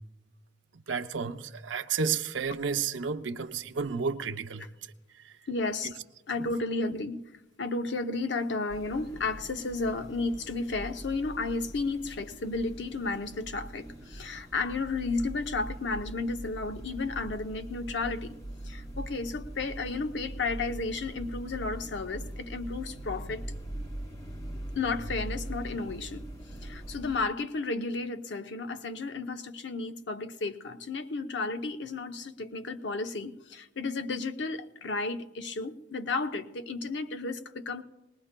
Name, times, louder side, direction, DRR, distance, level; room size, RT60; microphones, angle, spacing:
voice 1, 0.7-4.7 5.2-5.3 5.8-5.9, right 5 dB, 85° right, 0.6 m, -32 dB
voice 2, 5.5-6.0 6.3-7.2 7.6-18.4 18.6-23.5 24.8-26.3 26.6-37.8, left 3 dB, 70° left, 0.7 m, -33 dB
sound 1, 8.7-27.2, right 1 dB, 35° left, 1.3 m, -42 dB
20.0 x 19.5 x 2.2 m
head